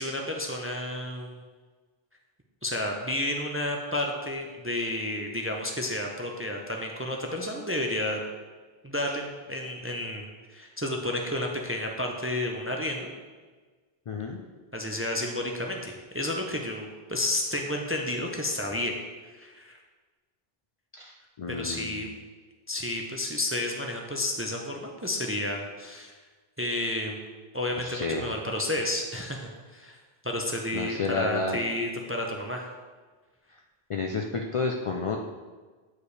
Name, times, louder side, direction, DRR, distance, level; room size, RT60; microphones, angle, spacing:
voice 1, 0.0-1.4 2.6-8.2 8.8-13.1 14.7-18.9 19.3-19.8 21.5-22.1 22.7-26.2 26.6-27.2 27.5-30.0 30.2-32.7, left 1 dB, 20° right, 1 dB, 0.4 m, -31 dB
voice 2, 14.1-14.4 20.9-22.0 27.8-28.3 30.7-31.6 33.9-35.2, left 4 dB, 55° left, 2 dB, 0.3 m, -31 dB
8.3 x 4.8 x 3.2 m, 1.4 s
omnidirectional pair, 1.0 m